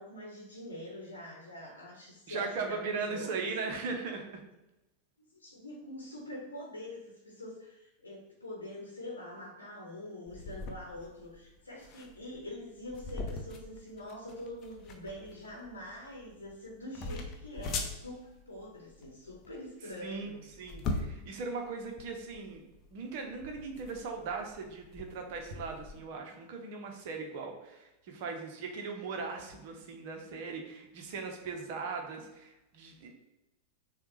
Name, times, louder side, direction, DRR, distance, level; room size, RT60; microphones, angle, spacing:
voice 1, 0.0-3.5 5.3-20.4, left 1 dB, 80° left, -2 dB, 0.9 m, -45 dB
voice 2, 2.3-4.4 20.0-22.6 22.9-33.1, right 4 dB, 50° right, 3 dB, 1.0 m, -39 dB
sound 1, 10.3-26.0, left 3 dB, 30° left, 0.7 m, -42 dB
6.7 x 2.4 x 3.2 m, 0.94 s
figure-of-eight pair, 90°, 0 cm